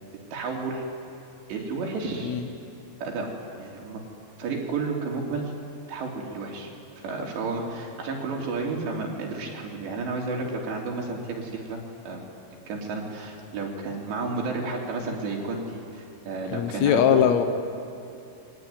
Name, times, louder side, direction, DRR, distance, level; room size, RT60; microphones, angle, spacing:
voice 1, 0.3-0.8 1.5-2.4 3.0-3.3 3.6-4.0 4.4-5.5 5.9-6.7 7.0-12.2 12.7-17.3, right 3 dB, 85° right, 0 dB, 5.5 m, -31 dB
voice 2, 16.5-17.4, left 9 dB, 80° left, 8 dB, 1.6 m, -21 dB
28.0 x 22.5 x 9.3 m, 2.6 s
omnidirectional pair, 4.9 m